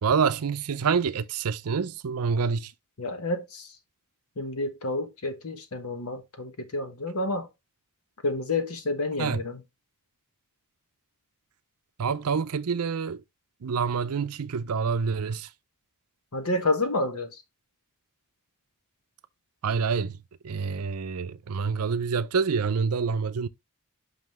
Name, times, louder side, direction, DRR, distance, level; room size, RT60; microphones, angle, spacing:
voice 1, 0.0-2.7 9.2-9.4 12.0-13.2 13.6-15.5 19.6-20.2 20.4-23.5, right 5 dB, 75° right, 0.5 m, -27 dB
voice 2, 3.0-3.7 4.4-7.5 8.2-9.6 16.3-17.4, left 2 dB, 70° left, 1.2 m, -29 dB
5.7 x 5.7 x 3.0 m
head